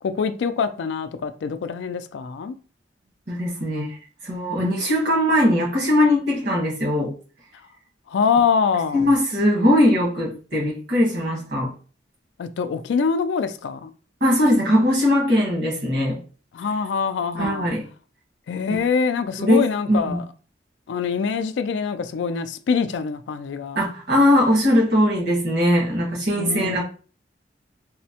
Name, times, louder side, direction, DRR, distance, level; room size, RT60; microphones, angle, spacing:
voice 1, 0.0-2.6 8.1-9.1 12.4-13.9 16.5-17.7 18.5-20.2 20.9-23.8 26.4-26.8, left 5 dB, 75° left, 0.3 m, -24 dB
voice 2, 3.3-4.0 4.2-7.1 8.9-11.7 14.2-16.2 17.3-17.8 19.4-20.2 23.7-26.8, left 1 dB, 65° right, 1.5 m, -20 dB
4.3 x 2.0 x 2.8 m
head